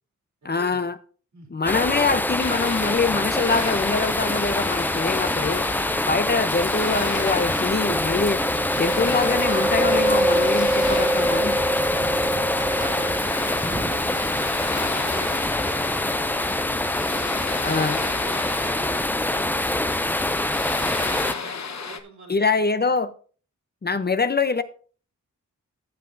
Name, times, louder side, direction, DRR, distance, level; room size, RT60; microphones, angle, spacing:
voice 1, 0.4-1.0 1.5-5.7 6.1-8.4 8.7-11.6 17.6-18.0 22.3-23.1 23.8-24.6, left 4 dB, 35° left, 0.7 m, -24 dB
sound 1, 1.7-21.3, left 1 dB, 5° left, 0.3 m, -25 dB
sound 2, 2.4-22.0, left 5 dB, 65° left, 1.0 m, -35 dB
voice 2, 5.9-6.5 12.1-17.4 17.9-22.6, right 4 dB, 70° right, 3.1 m, -44 dB
Chewing mastication, 6.4-15.4, right 1 dB, 15° right, 0.8 m, -26 dB
15.0 x 7.7 x 2.6 m
wide cardioid pair, 95°, 30 cm